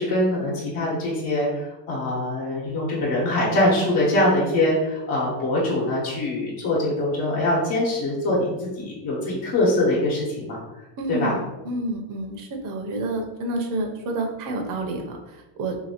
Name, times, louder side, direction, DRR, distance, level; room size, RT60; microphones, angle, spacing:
voice 1, 0.0-10.6 11.1-11.3, left 1 dB, 60° left, -5 dB, 1.1 m, -23 dB
voice 2, 11.0-15.8, right 2 dB, 45° right, 2 dB, 0.7 m, -29 dB
2.8 x 2.7 x 2.8 m, 1.0 s
cardioid pair, 125°, 45 cm